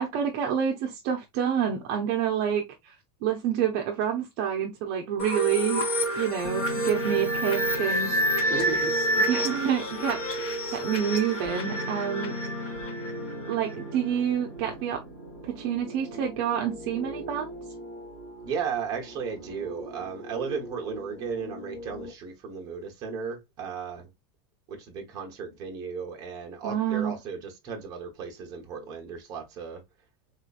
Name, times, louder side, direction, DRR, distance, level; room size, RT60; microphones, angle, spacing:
voice 1, 0.0-2.9 3.2-5.9 6.1-8.1 9.2-10.2 10.7-12.4 13.5-15.0 15.4-17.6 26.6-27.1, right 8 dB, 45° right, 0.7 m, -28 dB
sound 1, 5.2-13.8, right 1 dB, 40° left, 1.4 m, -28 dB
sound 2, 6.4-22.1, left 1 dB, 60° left, 2.6 m, -40 dB
voice 2, 8.5-9.0 18.4-24.1 24.7-29.8, right 6 dB, 30° right, 1.1 m, -35 dB
3.9 x 3.0 x 2.4 m
supercardioid pair, 170°, 14 cm